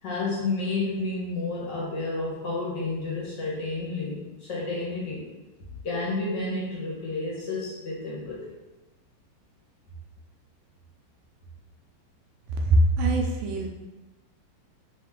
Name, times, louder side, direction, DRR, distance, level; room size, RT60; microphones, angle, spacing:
voice 1, 0.0-4.2 4.5-5.2 5.8-8.5, left 3 dB, 60° left, -6 dB, 1.6 m, -30 dB
voice 2, 12.6-13.7, right 1 dB, 80° right, 2 dB, 1.4 m, -22 dB
3.7 x 3.1 x 3.5 m, 1.1 s
omnidirectional pair, 2.4 m